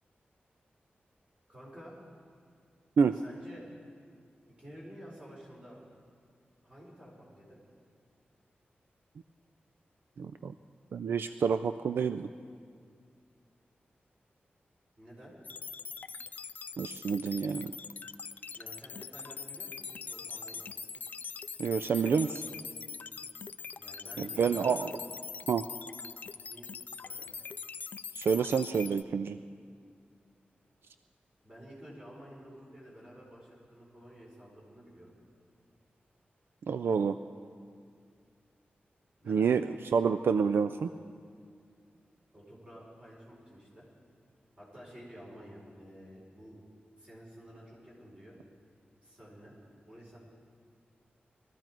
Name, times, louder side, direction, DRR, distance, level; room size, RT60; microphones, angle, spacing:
voice 1, 1.5-2.0 3.1-3.7 4.6-5.8 6.6-7.6 15.0-15.3 18.5-20.6 21.8-22.4 23.8-24.8 26.5-26.7 27.0-27.3 31.4-35.1 39.2-39.5 42.3-43.9 44.6-46.5 47.0-48.4 49.0-49.5 49.8-50.2, equal, 30° right, -5 dB, 4.6 m, -51 dB
voice 2, 10.2-10.5 10.9-12.3 16.8-17.7 21.6-22.3 24.2-24.9 25.5-25.6 28.1-29.4 36.7-37.2 39.3-39.6 39.9-40.9, right 6 dB, 80° right, 10 dB, 0.3 m, -28 dB
sound 1, 15.4-29.0, left 5 dB, 50° left, 0.3 m, -42 dB
21.5 x 14.0 x 4.5 m, 2.2 s
wide cardioid pair, 175°, 4 cm